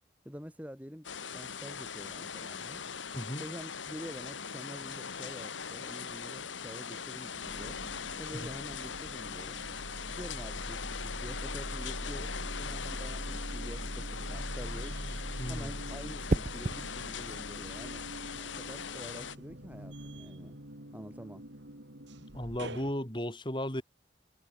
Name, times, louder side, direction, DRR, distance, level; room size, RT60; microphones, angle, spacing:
voice 1, 0.3-1.1 1.3-2.8 3.4-7.8 8.2-9.6 10.1-15.2 15.5-18.0 18.4-20.6 20.9-21.4, equal, 10° right, 3.5 m, -47 dB
sound 1, 1.0-19.4, left 6 dB, 80° left, 1.7 m, -41 dB
sound 2, 5.9-6.6 7.0-22.9, right 1 dB, 70° right, 4.9 m, -43 dB
voice 2, 15.4-15.7 22.3-23.8, left 1 dB, 25° left, 4.2 m, -35 dB
sound 3, 16.3-16.8 18.8-19.1, right 2 dB, 40° right, 0.6 m, -32 dB
head